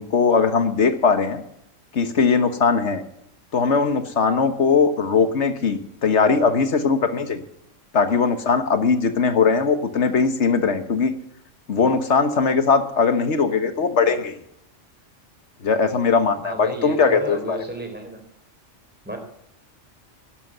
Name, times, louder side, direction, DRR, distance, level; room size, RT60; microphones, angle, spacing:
voice 1, 0.0-1.4 1.9-3.0 3.5-7.4 7.9-11.1 11.7-14.3 15.6-17.6, left 5 dB, 65° left, 9 dB, 1.7 m, -20 dB
voice 2, 16.4-18.2 19.0-19.2, right 1 dB, 10° right, 4 dB, 3.5 m, -32 dB
11.5 x 11.0 x 8.0 m, 0.76 s
omnidirectional pair, 1.3 m